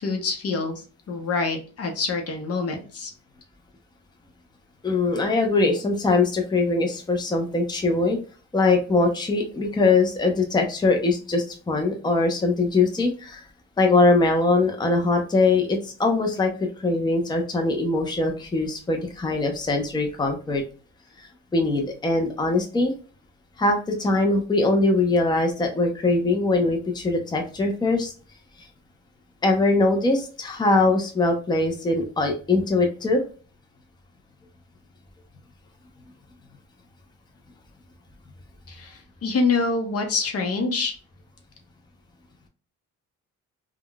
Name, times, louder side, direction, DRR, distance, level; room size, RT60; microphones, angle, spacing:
voice 1, 0.0-3.1 38.7-40.9, left 4 dB, 50° left, 4 dB, 0.8 m, -26 dB
voice 2, 4.8-8.2 8.5-13.5 13.8-20.6 21.2-22.9 23.6-28.1 29.4-33.2, left 3 dB, 15° left, 2 dB, 0.6 m, -22 dB
3.5 x 2.3 x 2.2 m, 0.36 s
cardioid pair, 90°, 30 cm